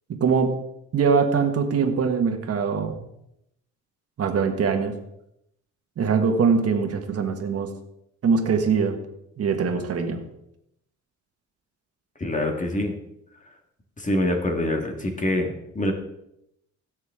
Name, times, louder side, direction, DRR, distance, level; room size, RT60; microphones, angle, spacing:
voice 1, 0.1-0.5 0.9-3.0 4.2-4.9 6.0-7.7 8.2-9.0 9.4-10.2, right 5 dB, 50° right, 4 dB, 1.6 m, -22 dB
voice 2, 12.2-12.9 14.0-15.9, left 1 dB, 25° left, 3 dB, 1.8 m, -25 dB
16.5 x 6.4 x 3.7 m, 0.79 s
cardioid pair, 90°, 30 cm